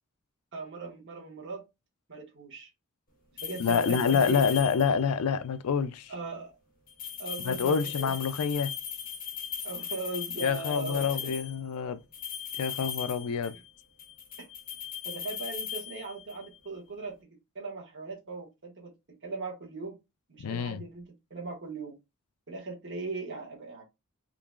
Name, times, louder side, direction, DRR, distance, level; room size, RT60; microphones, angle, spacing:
voice 1, 0.5-1.7 2.1-2.7 3.3-4.6 6.1-6.5 7.2-8.1 9.6-11.3 14.4-14.5 15.0-17.2 17.5-20.0 20.3-22.0 22.5-23.8, right 3 dB, 60° right, 1.5 m, -39 dB
sound 1, 3.4-5.1 6.9-11.6 12.1-13.7 14.0-16.5, left 8 dB, 40° left, 1.3 m, -38 dB
voice 2, 3.6-6.1 7.5-8.7 10.4-12.0 12.6-13.5 20.4-20.8, left 6 dB, 90° left, 0.4 m, -27 dB
3.8 x 2.9 x 2.4 m
head